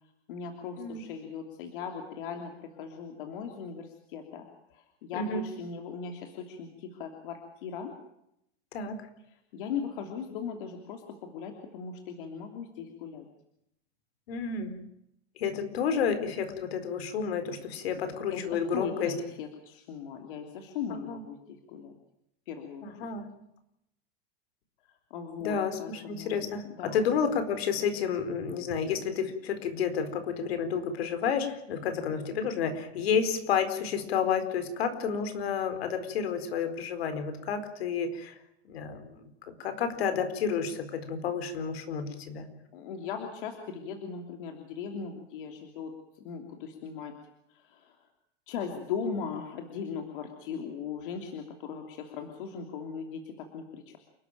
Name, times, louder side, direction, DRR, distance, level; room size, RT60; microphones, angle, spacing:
voice 1, 0.3-8.0 9.5-13.3 18.3-22.0 22.5-22.8 25.1-27.0 27.3-27.4 42.7-47.2 47.5-48.0 48.5-54.0, left 6 dB, 55° left, 4 dB, 3.1 m, -38 dB
voice 2, 5.1-5.5 8.7-9.0 14.3-14.8 15.4-19.1 21.1-21.2 22.8-23.3 25.4-38.4 38.6-39.1 39.6-42.5, left 6 dB, 70° left, 9 dB, 4.5 m, -30 dB
29.0 x 12.5 x 9.1 m, 0.78 s
supercardioid pair, 180°, 32 cm